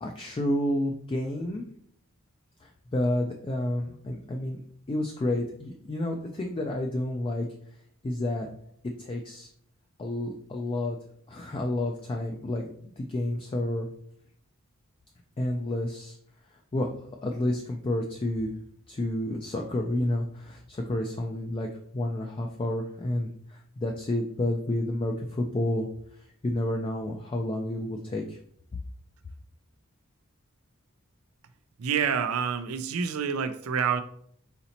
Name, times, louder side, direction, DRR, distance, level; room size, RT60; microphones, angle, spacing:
voice 1, 0.0-1.6 2.6-4.6 4.9-7.5 8.0-8.5 9.0-9.5 10.0-11.0 11.3-13.9 15.4-16.1 16.7-16.9 17.2-18.5 18.9-21.7 21.9-25.9 26.4-28.4, left 1 dB, 25° left, 2 dB, 0.3 m, -30 dB
voice 2, 31.8-34.0, right 7 dB, 75° right, 10 dB, 0.4 m, -27 dB
4.1 x 4.0 x 2.8 m, 0.66 s
head